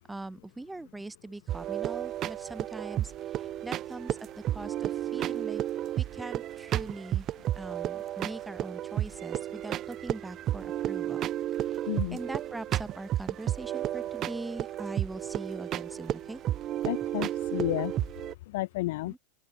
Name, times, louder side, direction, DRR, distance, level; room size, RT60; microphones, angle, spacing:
voice 1, 0.1-5.6 6.0-7.3 7.6-11.3 11.6-16.4 19.1-19.2, right 2 dB, 5° right, 7.4 m, -42 dB
sound 1, 1.5-18.3, right 12 dB, 30° right, 2.8 m, -33 dB
voice 2, 11.9-12.2 16.8-17.9 18.5-19.1, left 19 dB, 50° left, 2.2 m, -31 dB
open air
figure-of-eight pair, 90°, 0 cm